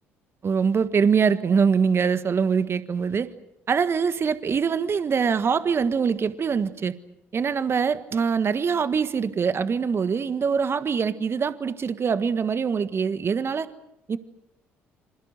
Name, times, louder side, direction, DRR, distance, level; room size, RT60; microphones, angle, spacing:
voice 1, 0.4-3.3 3.7-6.9 7.3-13.7 14.1-14.2, right 6 dB, 40° right, 12 dB, 1.6 m, -23 dB
28.0 x 26.5 x 6.7 m, 0.83 s
figure-of-eight pair, 50°, 7 cm